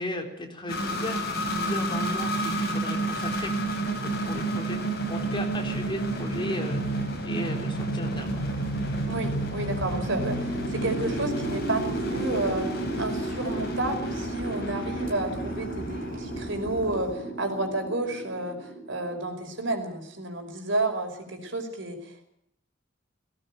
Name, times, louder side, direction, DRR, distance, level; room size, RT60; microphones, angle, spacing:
voice 1, 0.0-3.5 4.0-4.8 5.1-7.0 7.2-8.4, left 1 dB, 25° left, 3 dB, 3.8 m, -35 dB
sound 1, 0.7-19.2, right 1 dB, 55° left, 6.1 m, -30 dB
sound 2, 8.1-17.1, equal, 50° right, 3.2 m, -42 dB
voice 2, 9.1-22.3, right 2 dB, 75° right, 5 dB, 5.2 m, -31 dB
19.0 x 17.5 x 9.2 m, 0.73 s
head